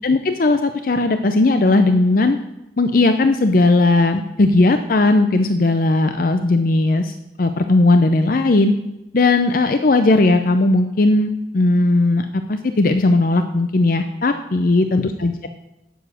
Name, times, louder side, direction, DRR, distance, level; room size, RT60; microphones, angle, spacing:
voice 1, 0.0-2.4 2.8-7.1 7.4-8.7 9.1-15.5, left 2 dB, 50° left, 8 dB, 0.5 m, -17 dB
9.0 x 7.1 x 6.3 m, 0.94 s
head